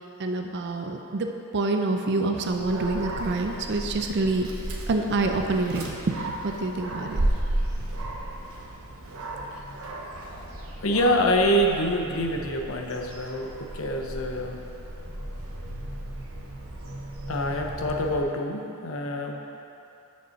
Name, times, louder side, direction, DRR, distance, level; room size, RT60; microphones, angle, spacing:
voice 1, 0.2-4.5 4.9-7.3, right 2 dB, 50° right, 4 dB, 0.5 m, -27 dB
Dog, 2.5-18.2, right 1 dB, 75° right, 1.0 m, -34 dB
voice 2, 10.8-14.6 17.3-19.3, equal, 65° left, 2 dB, 0.8 m, -26 dB
6.6 x 5.4 x 6.4 m, 2.9 s
head